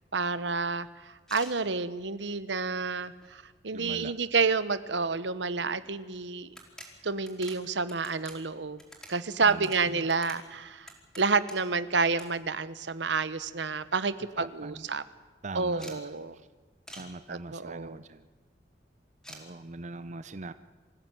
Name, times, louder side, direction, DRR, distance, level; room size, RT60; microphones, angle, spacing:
voice 1, 0.1-6.5 7.0-8.8 9.1-10.9 11.2-15.0 15.5-16.3 17.3-18.0, right 4 dB, 75° right, 14 dB, 1.1 m, -29 dB
sound 1, 1.2-1.6 2.3-2.4 2.8-3.5 3.9-4.0 4.2-4.3 5.7-5.8 6.0-6.1 6.5-11.8 12.2-12.3 12.6-13.3 13.7-13.8 14.0-14.1 14.4-14.7 15.8-16.0 16.9-17.1 19.2-19.4, equal, 5° left, 4.2 m, -49 dB
voice 2, 3.7-4.1 9.4-10.1 14.4-14.9 15.4-16.0 17.0-18.3 19.3-20.5, right 2 dB, 40° right, 12 dB, 0.7 m, -41 dB
25.5 x 15.5 x 9.2 m, 1.3 s
head